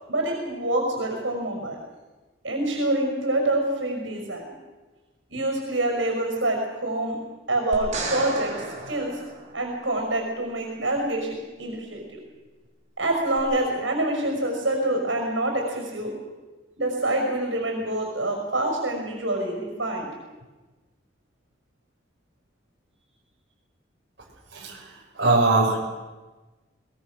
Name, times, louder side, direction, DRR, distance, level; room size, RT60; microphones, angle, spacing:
voice 1, 0.1-1.8 2.4-4.4 5.3-7.2 7.5-8.5 8.8-9.2 9.5-12.2 13.0-16.1 16.8-20.1, right 1 dB, 80° right, 2 dB, 6.0 m, -26 dB
sound 1, 7.7-10.0 13.4-13.5, right 3 dB, 40° right, 4.9 m, -34 dB
voice 2, 24.5-25.9, right 3 dB, 60° right, -3 dB, 6.1 m, -22 dB
23.5 x 21.5 x 6.5 m, 1.2 s
head